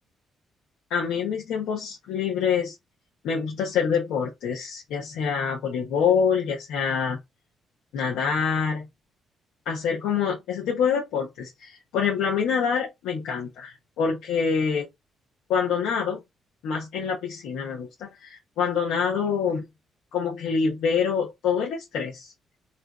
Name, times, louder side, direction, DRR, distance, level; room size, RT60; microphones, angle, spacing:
voice 1, 0.9-2.7 3.2-7.2 7.9-8.9 9.6-14.9 15.5-16.2 16.6-19.6 20.1-22.3, left 6 dB, 90° left, 1.3 m, -26 dB
3.3 x 3.1 x 3.0 m
cardioid pair, 90°, 0 cm